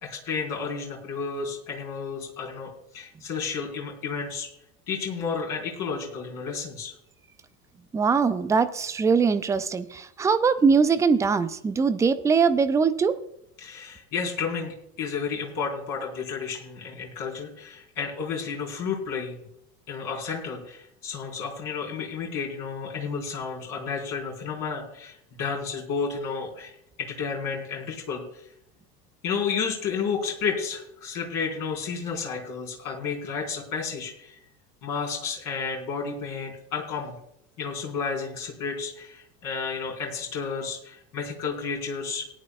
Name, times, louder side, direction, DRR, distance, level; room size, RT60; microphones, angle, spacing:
voice 1, 0.0-4.5 4.9-6.9 13.6-19.4 19.9-28.5 29.2-34.4 34.8-37.2 37.6-42.2, left 5 dB, 40° left, 0 dB, 4.3 m, -32 dB
voice 2, 7.9-13.2, right 5 dB, 5° right, 12 dB, 0.4 m, -22 dB
18.5 x 11.0 x 2.3 m, 0.77 s
figure-of-eight pair, 75°, 48 cm